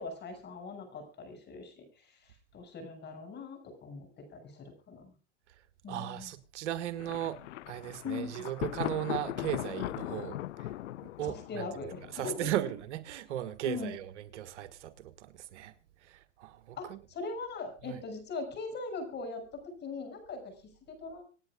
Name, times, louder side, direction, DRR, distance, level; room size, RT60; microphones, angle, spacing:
voice 1, 0.0-5.1 5.8-6.3 8.0-8.4 11.2-12.5 13.7-13.9 16.8-21.2, left 4 dB, 30° left, 6.1 m, -41 dB
voice 2, 5.9-7.4 7.7-10.7 11.0-11.7 12.1-15.7 16.0-17.0 17.8-18.0, right 12 dB, 75° right, 1.7 m, -37 dB
Thunder, 7.0-12.8, left 15 dB, 85° left, 0.6 m, -39 dB
26.5 x 9.6 x 2.4 m
supercardioid pair, 130°, 36 cm